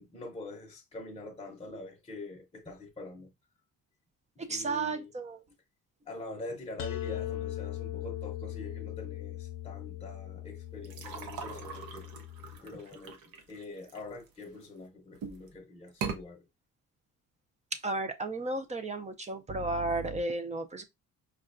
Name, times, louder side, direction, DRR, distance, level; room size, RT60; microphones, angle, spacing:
voice 1, 0.0-3.3 4.5-5.1 6.1-16.5, left 2 dB, 15° left, 0.6 m, -45 dB
voice 2, 4.5-5.4 17.8-20.8, right 2 dB, 20° right, 0.3 m, -33 dB
sound 1, 6.8-12.6, left 13 dB, 80° left, 0.5 m, -39 dB
sound 2, 10.8-14.7 15.1-15.5 15.9-16.2, right 6 dB, 90° right, 0.8 m, -40 dB
5.5 x 2.2 x 2.5 m
cardioid pair, 160°, 35 cm